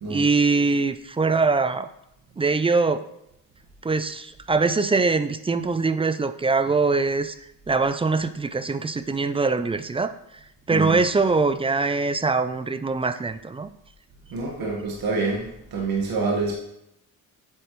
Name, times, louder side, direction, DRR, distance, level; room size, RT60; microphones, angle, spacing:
voice 1, 0.1-1.9 2.4-3.0 3.8-7.3 7.7-10.1 10.7-13.7, right 4 dB, 15° right, 11 dB, 0.4 m, -22 dB
voice 2, 14.3-15.5 15.7-16.5, right 3 dB, 75° right, -2 dB, 1.7 m, -26 dB
8.1 x 7.5 x 3.1 m, 0.81 s
cardioid pair, 105°, 36 cm